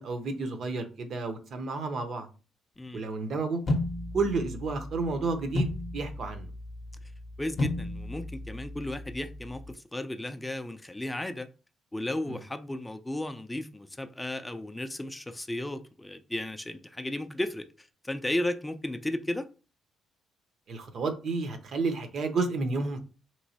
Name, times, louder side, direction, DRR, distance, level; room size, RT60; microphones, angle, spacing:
voice 1, 0.0-2.3 2.9-3.6 4.1-6.5 12.3-12.4 20.7-23.0, right 3 dB, 60° right, 0.6 m, -31 dB
sound 1, 3.7-9.7, left 2 dB, 50° left, 0.6 m, -34 dB
voice 2, 7.4-11.5 11.9-19.5, left 1 dB, 10° left, 0.3 m, -34 dB
3.0 x 2.9 x 2.7 m
cardioid pair, 90°, 0 cm